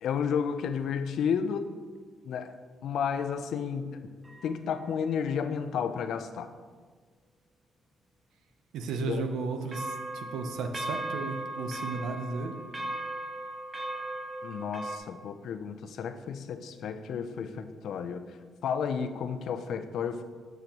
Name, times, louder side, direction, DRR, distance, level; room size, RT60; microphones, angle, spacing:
voice 1, 0.0-1.7 2.2-2.5 2.8-4.1 4.4-6.5 9.1-9.2 14.4-18.2 18.6-20.2, left 7 dB, 70° left, 10 dB, 0.4 m, -32 dB
sound 1, 4.2-4.9 9.7-15.0, right 1 dB, 10° right, 0.7 m, -37 dB
voice 2, 8.7-12.6, right 4 dB, 85° right, 6 dB, 0.7 m, -34 dB
7.7 x 6.8 x 2.9 m, 1.5 s
cardioid pair, 90°, 0 cm